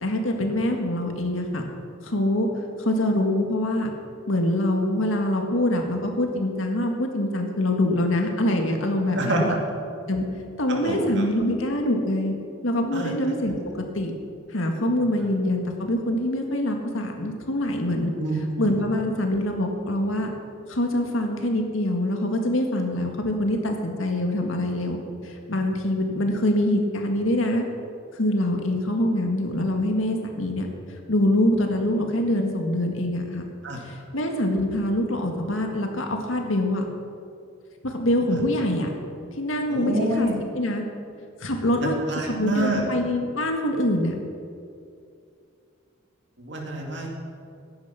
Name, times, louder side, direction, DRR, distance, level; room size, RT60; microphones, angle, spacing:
voice 1, 0.0-1.6 2.0-2.5 2.8-3.9 4.3-9.6 10.1-10.3 10.6-12.3 12.6-13.6 14.0-14.1 14.5-18.1 18.6-20.3 20.7-27.6 28.1-30.7 31.1-33.4 33.8-36.8 37.8-38.9 39.4-40.3 40.5-40.9 41.4-42.0 42.3-44.1, left 1 dB, 80° left, 3 dB, 1.9 m, -24 dB
voice 2, 9.1-9.6 10.7-11.3 12.9-13.1 15.2-15.3 18.2-18.8 33.6-33.8 39.7-40.4 41.8-42.8 46.4-47.1, right 1 dB, 60° right, 0 dB, 2.4 m, -27 dB
15.0 x 10.5 x 5.8 m, 2.5 s
head